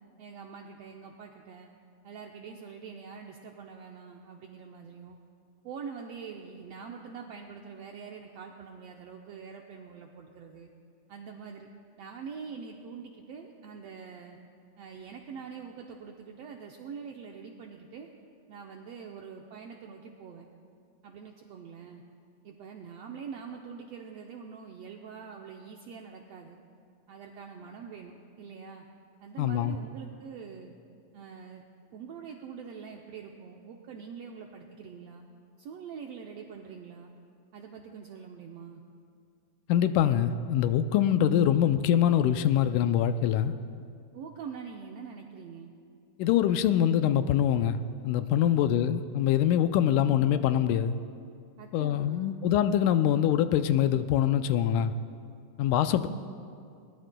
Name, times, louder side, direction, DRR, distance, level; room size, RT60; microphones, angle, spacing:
voice 1, 0.2-1.7 2.0-5.2 5.6-10.7 11.1-11.7 12.0-14.4 14.8-18.1 18.5-20.5 21.0-22.0 22.4-26.6 27.1-28.8 29.2-30.7 31.1-31.6 31.9-35.2 35.6-37.1 37.5-38.8 44.1-45.7 48.4-48.7 51.6-52.5, right 6 dB, 80° right, 2 dB, 1.4 m, -44 dB
voice 2, 29.4-29.8 39.7-43.5 46.2-47.8 48.0-50.9 51.7-54.9 55.6-56.1, left 10 dB, 85° left, 10 dB, 2.0 m, -24 dB
21.5 x 19.0 x 2.2 m, 2.3 s
omnidirectional pair, 3.6 m